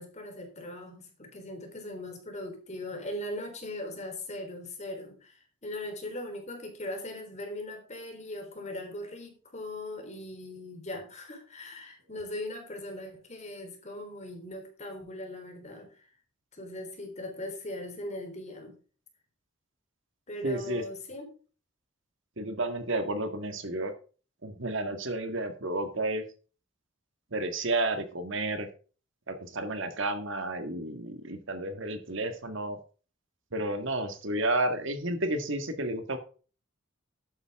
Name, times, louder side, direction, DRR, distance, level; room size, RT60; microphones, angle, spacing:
voice 1, 0.0-16.1 16.5-18.8 20.3-21.3, left 1 dB, 35° left, 4 dB, 3.7 m, -39 dB
voice 2, 20.4-20.8 22.4-23.9 24.4-26.2 27.3-28.7 29.3-32.8 33.5-36.2, right 2 dB, 65° right, 8 dB, 1.7 m, -31 dB
12.0 x 9.5 x 3.6 m, 0.38 s
head